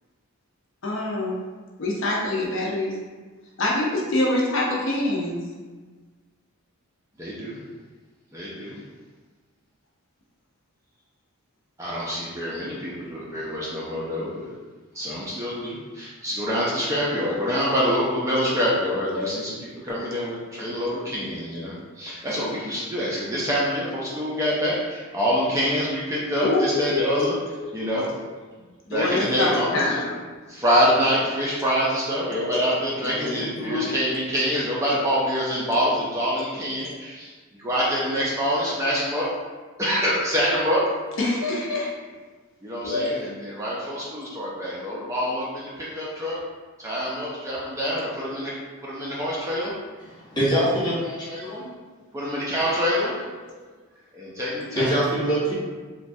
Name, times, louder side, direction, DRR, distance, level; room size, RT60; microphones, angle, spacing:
voice 1, 0.8-1.4 1.8-2.9 3.6-5.4 19.1-19.3 21.5-21.7 26.4-27.3 27.6-27.7 28.9-30.1 33.0-33.9 41.2-41.9 42.8-43.3 54.4-54.5, left 2 dB, 55° left, -4 dB, 0.6 m, -25 dB
voice 2, 7.2-7.6 8.3-8.8 11.8-14.5 14.9-27.3 27.7-28.1 28.9-29.9 30.5-37.3 37.6-39.3 39.8-40.8 42.6-46.4 46.8-48.5 48.8-49.7 52.1-53.2 54.1-55.0, equal, 15° right, -6 dB, 0.3 m, -26 dB
voice 3, 50.2-51.7 54.7-55.5, right 1 dB, 20° left, -8 dB, 0.7 m, -24 dB
3.1 x 2.2 x 2.5 m, 1.4 s
head